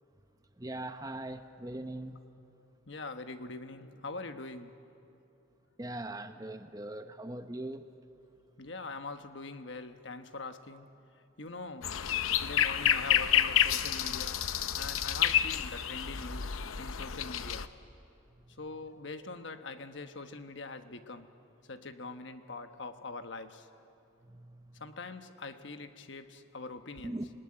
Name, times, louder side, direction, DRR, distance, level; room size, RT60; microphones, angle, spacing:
voice 1, 0.6-2.2 5.8-7.9 18.4-18.6 24.2-24.8 27.0-27.3, right 1 dB, 15° right, 0.8 m, -41 dB
voice 2, 2.9-4.7 8.6-10.9 11.4-11.9 12.4-14.5 14.8-17.7 18.6-21.3 21.6-23.7 24.8-27.2, left 3 dB, 65° left, 1.3 m, -43 dB
sound 1, 11.8-17.7, left 9 dB, 85° left, 0.8 m, -29 dB
26.5 x 19.5 x 10.0 m
head